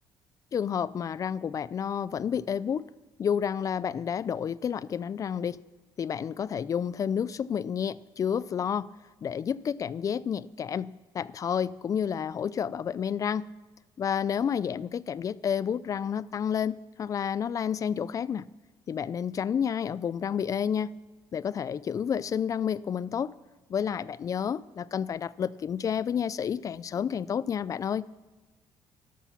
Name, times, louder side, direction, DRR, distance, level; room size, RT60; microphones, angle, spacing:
voice 1, 0.5-2.9 3.2-5.6 6.0-8.9 9.2-13.5 14.0-18.5 18.9-20.9 21.3-23.3 23.7-28.0, left 8 dB, 40° left, 20 dB, 0.4 m, -30 dB
13.0 x 12.0 x 5.8 m, 1.2 s
cardioid pair, 110°, 9 cm